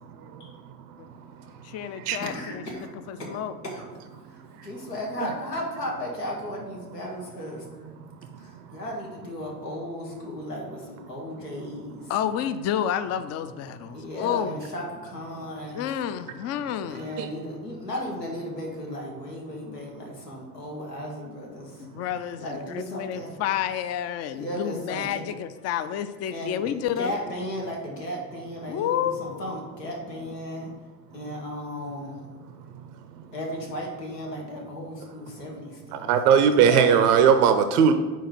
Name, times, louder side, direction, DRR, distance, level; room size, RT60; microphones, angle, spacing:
voice 1, 1.6-2.6 3.1-3.5 12.1-14.6 15.7-17.1 21.8-27.1 28.7-29.6 36.4-37.0, left 10 dB, 35° left, 11 dB, 0.4 m, -30 dB
voice 2, 2.2-2.9 3.2-3.4 3.6-3.8 4.3-7.6 8.4-12.1 13.9-15.8 16.9-21.9 22.4-23.3 24.3-25.2 26.3-30.7 31.1-32.2 33.3-36.1, left 1 dB, 90° left, -1 dB, 1.2 m, -35 dB
voice 3, 35.9-37.9, right 7 dB, 70° right, 9 dB, 0.6 m, -19 dB
4.6 x 4.5 x 5.8 m, 1.3 s
figure-of-eight pair, 60°, 47 cm